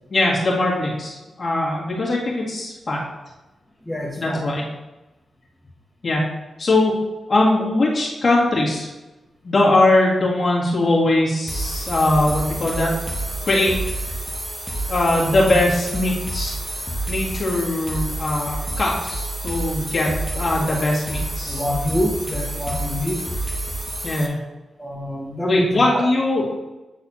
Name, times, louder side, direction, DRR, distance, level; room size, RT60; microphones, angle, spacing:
voice 1, 0.1-3.0 4.2-4.6 6.0-6.2 6.6-6.9 7.3-8.9 9.4-12.9 13.4-13.8 14.9-16.6 17.1-21.6 24.0-24.4 25.4-26.4, left 2 dB, 50° left, -4 dB, 1.9 m, -20 dB
voice 2, 3.8-4.4 21.4-23.2 24.8-26.0, equal, 10° left, -4 dB, 1.7 m, -25 dB
sound 1, 11.5-24.3, right 1 dB, 15° right, 1.2 m, -29 dB
8.8 x 4.0 x 2.8 m, 1.1 s
cardioid pair, 50°, 0 cm